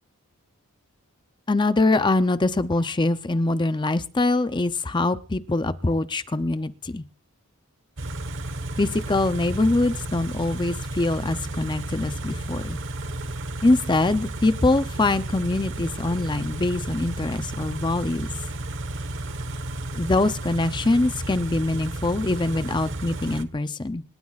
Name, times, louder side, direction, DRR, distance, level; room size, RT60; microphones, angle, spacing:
voice 1, 1.5-7.0 8.8-12.8 13.6-18.3 19.9-24.0, left 2 dB, 20° left, 12 dB, 0.5 m, -23 dB
Car / Idling, 8.0-23.4, right 2 dB, 60° right, 1.3 m, -33 dB
26.0 x 13.5 x 2.4 m, 0.41 s
head